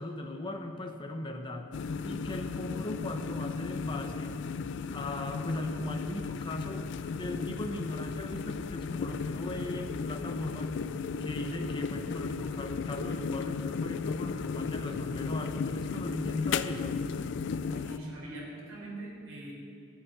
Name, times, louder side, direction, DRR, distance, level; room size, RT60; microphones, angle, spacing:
voice 1, 0.0-1.7 2.0-4.4 4.9-10.8 11.2-17.0, left 1 dB, 20° left, 3 dB, 0.7 m, -38 dB
sound 1, 1.7-18.0, left 5 dB, 55° left, 0.4 m, -35 dB
voice 2, 17.6-19.5, right 1 dB, 65° right, -4 dB, 3.8 m, -43 dB
13.0 x 7.3 x 8.9 m, 2.6 s
head